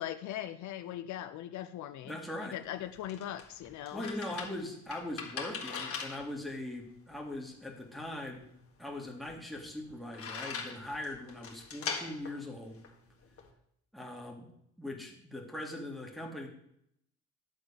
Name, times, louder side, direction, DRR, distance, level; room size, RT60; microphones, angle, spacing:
voice 1, 0.0-4.1, left 12 dB, 70° left, 11 dB, 0.6 m, -40 dB
voice 2, 2.0-2.6 3.9-8.5 8.8-12.8 13.9-14.5 14.8-16.5, left 1 dB, ahead, -1 dB, 1.9 m, -41 dB
sound 1, 2.6-13.5, left 5 dB, 50° left, 1.7 m, -43 dB
10.0 x 3.9 x 6.9 m, 0.74 s
cardioid pair, 105°, 30 cm